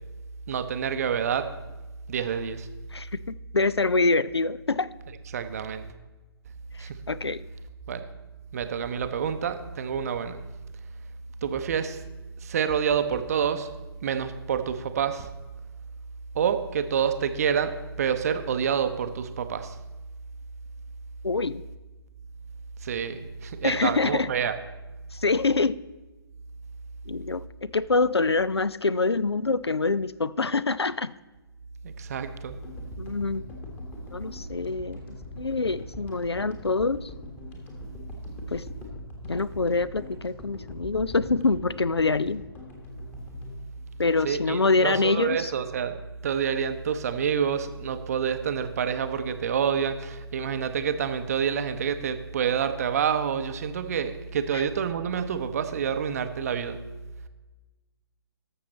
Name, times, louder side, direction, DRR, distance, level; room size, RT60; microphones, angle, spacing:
voice 1, 0.5-1.5 2.1-2.7 5.3-5.9 6.8-7.0 7.9-8.1 8.5-10.5 11.4-12.0 12.4-13.7 14.0-15.3 16.3-19.8 22.8-24.6 31.8-32.6 44.2-56.8, right 7 dB, 40° right, 10 dB, 0.6 m, -28 dB
voice 2, 2.9-4.9 7.1-7.4 21.2-21.6 23.6-24.3 25.1-25.8 27.1-31.1 33.0-33.4 34.1-37.1 38.5-38.6 39.3-42.4 44.0-45.5 54.5-54.6, left 3 dB, 85° left, 18 dB, 0.4 m, -25 dB
sound 1, 32.5-44.8, left 1 dB, 15° left, 1.4 m, -42 dB
13.5 x 6.4 x 4.1 m, 1.2 s
figure-of-eight pair, 130°, 13 cm